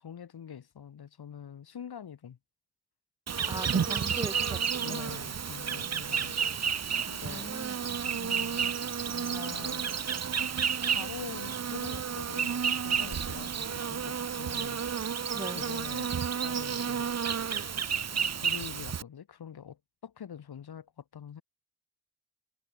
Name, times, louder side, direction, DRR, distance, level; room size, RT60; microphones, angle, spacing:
voice 1, 0.0-2.4 4.8-6.6 7.1-7.8 8.1-8.7 9.1-9.9 10.9-15.0 15.3-16.1 16.4-17.1 18.1-21.4, left 8 dB, 65° left, 6.2 m, -45 dB
Insect, 3.3-19.0, right 7 dB, 40° right, 1.2 m, -31 dB
voice 2, 3.5-5.0 7.2-8.0 15.3-15.6, right 1 dB, 10° right, 6.3 m, -40 dB
wide cardioid pair, 155°, 40 cm